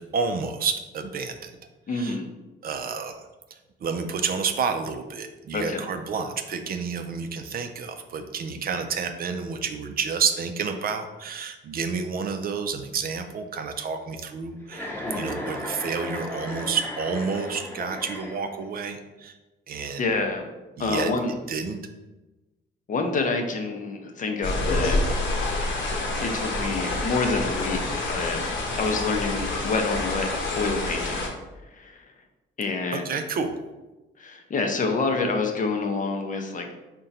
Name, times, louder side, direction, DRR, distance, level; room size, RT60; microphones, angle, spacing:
voice 1, 0.0-1.6 1.9-2.2 2.6-3.2 3.8-19.4 19.7-20.1 20.8-21.1 21.5-21.8 32.9-33.5, right 5 dB, 50° right, 7 dB, 0.4 m, -30 dB
voice 2, 1.9-2.3 5.5-5.9 15.0-15.4 20.0-20.5 20.8-21.3 22.9-25.0 26.2-28.5 28.7-31.2 31.7-32.1 32.6-33.1 34.2-36.7, left 3 dB, 40° left, 4 dB, 0.6 m, -27 dB
Chuckle chortle, 14.7-18.7, left 1 dB, 10° left, 0.8 m, -35 dB
sound 1, 24.4-31.3, left 2 dB, 70° left, 0.8 m, -27 dB
3.6 x 2.2 x 4.0 m, 1.1 s
cardioid pair, 90°, 20 cm